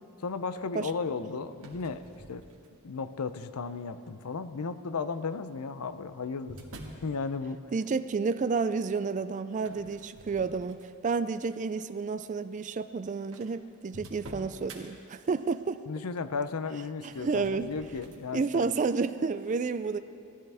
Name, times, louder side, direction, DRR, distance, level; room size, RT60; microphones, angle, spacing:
voice 1, 0.2-2.0 2.3-2.4 2.8-6.6 7.0-7.6 15.9-18.7, left 4 dB, 80° left, 12 dB, 0.6 m, -34 dB
sound 1, 1.5-3.0 3.6-4.1 5.2-7.1 9.6-11.1 11.6-11.8 12.6-12.7 12.9-13.0 13.3-14.8 16.9-18.2, right 1 dB, 65° right, 1.7 m, -49 dB
voice 2, 7.7-15.8 17.0-17.7 18.3-20.0, right 4 dB, 35° right, 11 dB, 0.3 m, -30 dB
19.0 x 13.5 x 3.5 m, 2.5 s
head